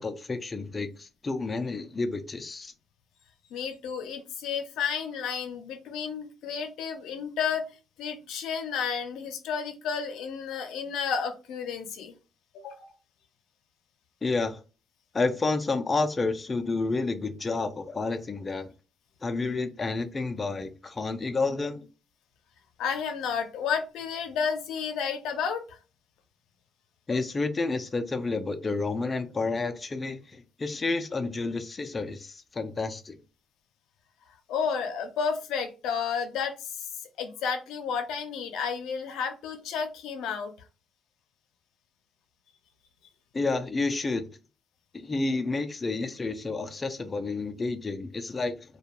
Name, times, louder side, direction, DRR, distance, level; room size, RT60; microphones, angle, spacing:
voice 1, 0.0-2.7 14.2-14.6 15.1-18.7 19.2-21.9 27.1-33.2 43.3-44.3 44.9-48.6, left 3 dB, 30° left, 0.3 m, -30 dB
voice 2, 3.5-7.6 8.0-12.1 12.5-12.9 22.8-25.8 34.5-36.9 37.2-40.5, left 6 dB, 90° left, 0.5 m, -31 dB
2.3 x 2.2 x 2.8 m
cardioid pair, 90°, 0 cm